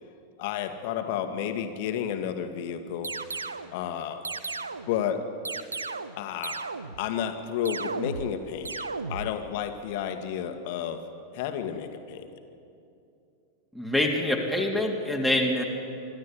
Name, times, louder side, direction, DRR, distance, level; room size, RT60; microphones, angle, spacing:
voice 1, 0.4-3.1 3.7-4.2 4.9-5.2 6.1-6.6 7.0-11.0 11.3-12.3, left 9 dB, 50° left, 7 dB, 1.9 m, -31 dB
sound 1, 3.0-3.7 4.2-5.0 5.4-6.2 6.4-7.1 7.6-8.4 8.6-9.3, right 4 dB, 75° right, 0.8 m, -34 dB
voice 2, 13.7-15.6, left 1 dB, 5° right, 1 dB, 2.8 m, -25 dB
25.5 x 12.5 x 9.9 m, 2.6 s
figure-of-eight pair, 90°, 0 cm